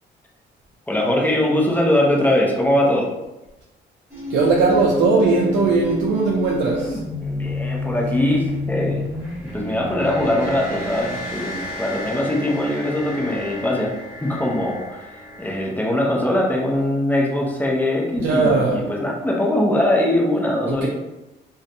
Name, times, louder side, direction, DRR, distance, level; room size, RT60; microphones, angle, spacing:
voice 1, 0.9-3.1 7.2-9.0 9.4-13.9 14.2-15.1 15.4-20.9, left 1 dB, 10° left, -2 dB, 0.6 m, -21 dB
sound 1, 4.1-15.7, left 2 dB, 10° right, 1.3 m, -30 dB
voice 2, 4.3-7.0 18.2-18.8 20.7-20.9, right 3 dB, 70° right, -4 dB, 0.5 m, -19 dB
2.5 x 2.2 x 2.6 m, 0.99 s
cardioid pair, 90°, 20 cm